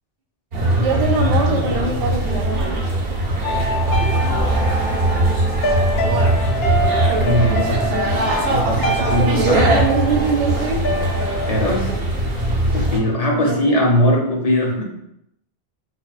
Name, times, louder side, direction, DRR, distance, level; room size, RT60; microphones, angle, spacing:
sound 1, 0.5-13.0, right 1 dB, 70° right, 0.9 m, -21 dB
voice 1, 0.8-2.8 7.1-8.1 9.2-10.8 13.3-13.8 14.0-14.2, right 4 dB, 45° right, 1 dB, 0.5 m, -24 dB
sound 2, 3.4-11.9, equal, 75° left, 0.8 m, -24 dB
voice 2, 7.2-9.7 11.5-11.9 12.7-14.8, equal, 45° left, -2 dB, 0.6 m, -20 dB
5.6 x 2.1 x 2.3 m, 0.78 s
omnidirectional pair, 1.1 m